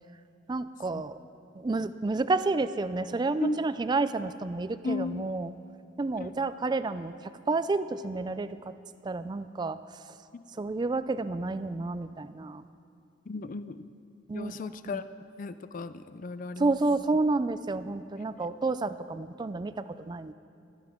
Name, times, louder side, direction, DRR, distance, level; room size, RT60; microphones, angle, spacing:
voice 1, 0.5-1.2 1.6-5.5 6.0-8.7 9.0-9.8 10.6-12.7 14.3-15.0 16.6-20.3, right 3 dB, 25° right, 13 dB, 0.3 m, -30 dB
voice 2, 4.8-5.4 6.2-6.3 10.3-10.4 13.3-13.9 14.3-15.0 15.4-16.8, left 3 dB, 45° left, 13 dB, 0.4 m, -35 dB
16.0 x 12.5 x 3.7 m, 2.5 s
head